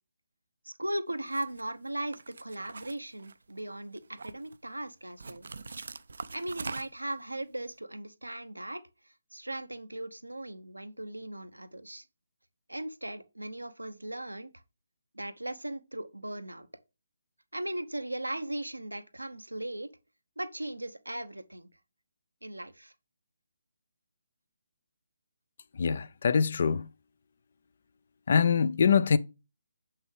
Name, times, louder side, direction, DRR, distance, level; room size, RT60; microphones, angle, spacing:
voice 1, 0.6-5.5 6.3-8.8 9.3-12.0 12.7-14.5 15.1-16.7 17.5-19.9 20.4-21.7 22.4-22.9, right 1 dB, 90° right, 0.8 m, -38 dB
cigarette out of the package, 1.3-1.6 2.1-3.6 4.0-4.6 5.2-7.1, right 4 dB, 65° right, 0.5 m, -42 dB
voice 2, 25.8-26.9 28.3-29.2, left 6 dB, 50° left, 0.5 m, -24 dB
7.1 x 5.7 x 3.2 m
figure-of-eight pair, 145°, 0 cm